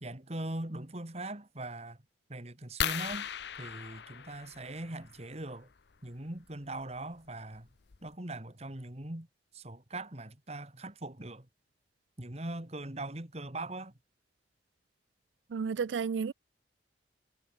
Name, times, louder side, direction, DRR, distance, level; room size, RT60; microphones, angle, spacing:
voice 1, 0.0-2.0 2.3-3.3 3.6-5.7 6.0-7.7 8.0-9.3 9.5-11.5 12.2-13.9, right 2 dB, 35° right, 2.3 m, -41 dB
sound 1, 2.8-5.2 6.8-7.0 7.5-7.6 7.9-8.1, left 9 dB, 70° left, 0.7 m, -37 dB
voice 2, 15.5-16.3, right 6 dB, 90° right, 0.4 m, -32 dB
head